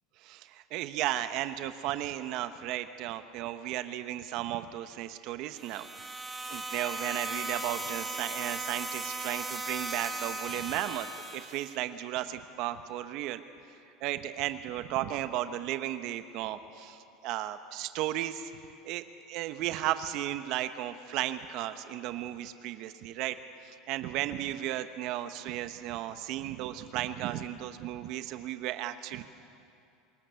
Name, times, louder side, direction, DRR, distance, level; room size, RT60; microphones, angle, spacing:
voice 1, 0.2-6.1 6.5-13.4 14.0-18.5 18.8-23.4 23.6-29.2, right 13 dB, 60° right, 10 dB, 1.0 m, -35 dB
sound 1, 5.6-11.7, right 2 dB, 15° right, 2.1 m, -37 dB
25.5 x 21.0 x 7.0 m, 2.5 s
supercardioid pair, 110°, 0 cm